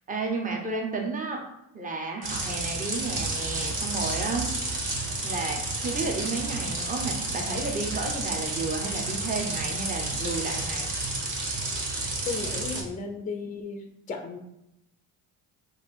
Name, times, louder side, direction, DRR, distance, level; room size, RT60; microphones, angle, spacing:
voice 1, 0.1-1.4 1.7-4.5 5.2-10.9, right 3 dB, 15° right, 2 dB, 0.8 m, -32 dB
sound 1, 2.2-12.8, right 2 dB, 40° right, 1.3 m, -31 dB
voice 2, 12.3-14.4, left 4 dB, 15° left, 5 dB, 0.5 m, -35 dB
3.4 x 2.7 x 4.2 m, 0.83 s
supercardioid pair, 65°, 49 cm